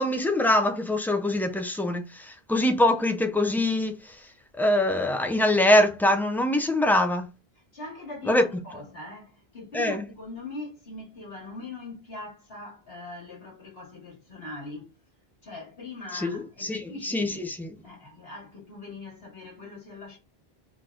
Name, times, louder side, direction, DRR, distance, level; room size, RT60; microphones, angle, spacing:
voice 1, 0.0-3.9 4.6-7.3 8.3-8.4 9.7-10.0 16.1-17.7, left 1 dB, 5° left, 0.4 m, -23 dB
voice 2, 7.7-14.9 15.4-17.5 17.8-20.2, left 2 dB, 75° left, 2.0 m, -41 dB
4.4 x 3.9 x 2.5 m
omnidirectional pair, 1.0 m